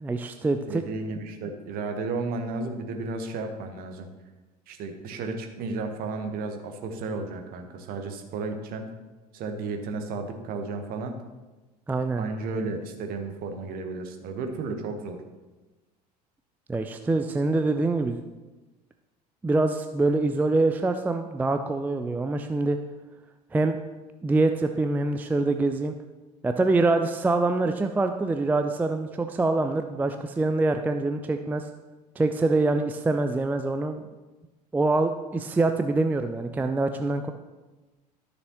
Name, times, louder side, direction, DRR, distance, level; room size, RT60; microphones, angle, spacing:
voice 1, 0.0-0.8 11.9-12.2 16.7-18.2 19.4-22.8 23.5-23.8 24.2-25.9 26.4-31.6 32.2-34.0 34.7-37.3, right 2 dB, 10° right, 7 dB, 0.4 m, -25 dB
voice 2, 0.7-4.1 4.7-8.9 9.3-11.2 12.2-15.2, right 3 dB, 45° right, 5 dB, 1.2 m, -33 dB
12.5 x 6.6 x 3.0 m, 1.2 s
figure-of-eight pair, 70°, 21 cm